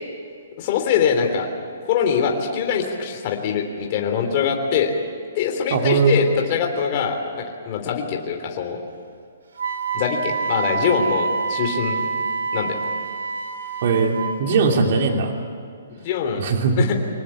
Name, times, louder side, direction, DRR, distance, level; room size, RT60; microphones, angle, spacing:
voice 1, 0.6-1.5 1.8-4.9 5.3-8.8 9.9-12.1 12.5-12.8 15.9-16.5 16.8-16.9, left 7 dB, 30° left, 2 dB, 3.3 m, -23 dB
voice 2, 5.7-6.2 13.8-15.3 16.4-16.8, right 4 dB, 45° right, 3 dB, 2.9 m, -19 dB
Wind instrument woodwind instrument, 9.6-14.4, right 4 dB, 80° right, 3.6 m, -26 dB
25.0 x 19.5 x 8.6 m, 2.3 s
hypercardioid pair, 170°, 0 cm